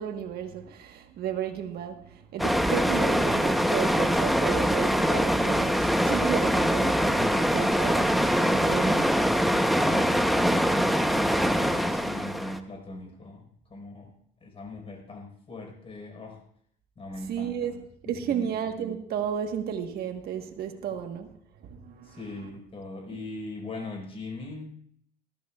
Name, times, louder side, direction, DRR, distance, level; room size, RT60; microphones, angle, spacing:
voice 1, 0.0-2.0 2.3-9.1 17.3-17.7 18.0-21.3 21.6-22.2, right 8 dB, 65° right, 5 dB, 1.4 m, -33 dB
sound 1, 2.4-12.6, equal, ahead, 0.9 m, -23 dB
voice 2, 9.5-14.1 14.4-16.4 17.0-17.8 18.0-18.5 20.9-21.0 22.0-24.7, left 2 dB, 35° left, 3 dB, 4.7 m, -40 dB
20.0 x 14.0 x 2.4 m, 0.65 s
cardioid pair, 110°, 17 cm